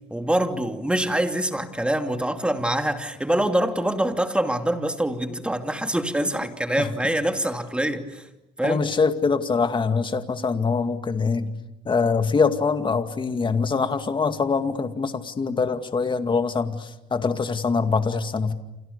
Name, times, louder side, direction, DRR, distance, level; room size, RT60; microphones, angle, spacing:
voice 1, 0.1-8.3 8.6-8.8, right 1 dB, 5° right, 6 dB, 2.7 m, -25 dB
voice 2, 8.6-11.5 11.9-18.5, left 5 dB, 30° left, 8 dB, 2.3 m, -24 dB
30.0 x 28.0 x 6.9 m, 0.94 s
cardioid pair, 110°, 17 cm